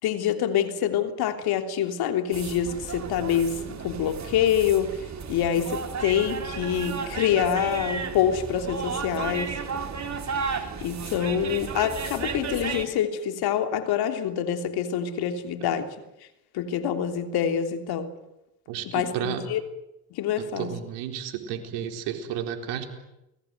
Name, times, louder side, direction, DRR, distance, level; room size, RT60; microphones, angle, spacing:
voice 1, 0.0-9.5 10.4-15.9 16.5-18.1 18.9-19.6 20.1-20.7, left 9 dB, 70° left, 3.2 m, -26 dB
sound 1, 2.3-12.9, right 5 dB, 45° right, 4.3 m, -33 dB
voice 2, 18.7-19.4 20.4-22.8, right 9 dB, 80° right, 4.3 m, -32 dB
29.5 x 20.5 x 9.4 m
supercardioid pair, 70°, 39 cm